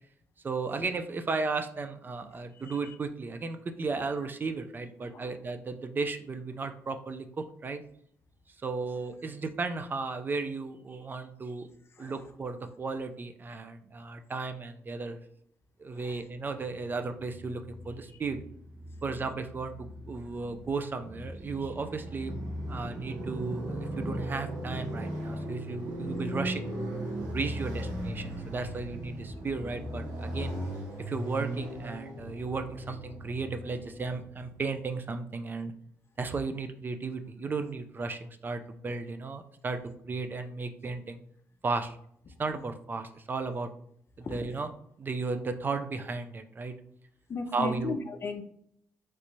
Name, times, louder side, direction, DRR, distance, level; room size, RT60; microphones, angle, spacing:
voice 1, 0.4-7.8 8.6-11.7 12.0-15.2 15.8-18.4 19.0-22.3 22.7-26.9 27.3-30.5 31.1-35.7 36.2-39.8 40.1-41.2 41.6-42.0 42.4-43.7 44.2-44.7 45.0-46.7 47.5-48.0, right 4 dB, 35° right, 8 dB, 0.4 m, -35 dB
Motorcycle, 16.4-34.6, right 1 dB, 85° right, 1.2 m, -38 dB
voice 2, 47.3-48.4, left 3 dB, 40° left, 8 dB, 0.5 m, -35 dB
3.2 x 2.6 x 3.0 m, 0.66 s
cardioid pair, 80°, 6 cm